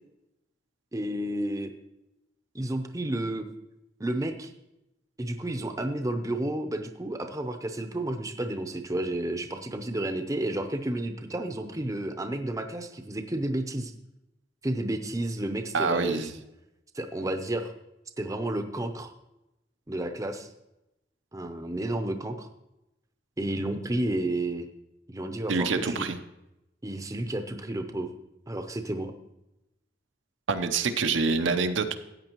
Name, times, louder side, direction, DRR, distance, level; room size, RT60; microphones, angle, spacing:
voice 1, 0.9-1.7 2.5-3.5 4.0-4.5 5.2-13.9 14.6-16.2 16.9-17.7 18.2-19.1 19.9-20.5 21.3-22.5 23.4-24.7 25.1-26.1 26.8-28.1 28.5-29.1, right 1 dB, 15° right, 6 dB, 0.6 m, -31 dB
voice 2, 15.7-16.3 25.5-26.2 30.5-32.0, right 4 dB, 75° right, 8 dB, 0.7 m, -26 dB
14.0 x 8.6 x 3.0 m, 0.91 s
head